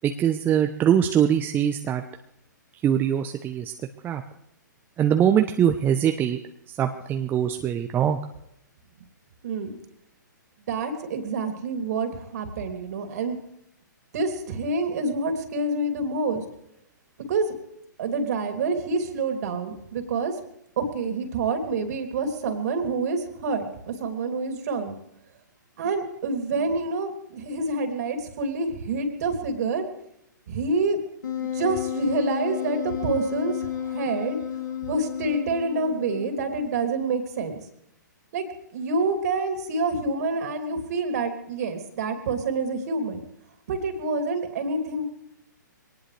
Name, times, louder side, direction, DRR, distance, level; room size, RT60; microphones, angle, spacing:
voice 1, 0.0-2.0 2.8-3.7 4.0-4.2 5.0-6.4 6.8-8.2, right 9 dB, 20° right, 5 dB, 0.8 m, -22 dB
voice 2, 9.4-9.8 10.7-13.4 14.1-16.4 17.3-17.5 18.0-20.3 20.8-24.9 25.8-29.8 30.5-31.0 31.5-34.4 34.9-37.5 38.3-38.4 38.7-43.2 43.7-45.0, right 3 dB, 55° right, 5 dB, 3.0 m, -27 dB
Wind instrument woodwind instrument, 31.2-36.6, left 10 dB, 70° left, 2.3 m, -32 dB
23.0 x 18.5 x 3.4 m, 0.80 s
hypercardioid pair, 125°, 10 cm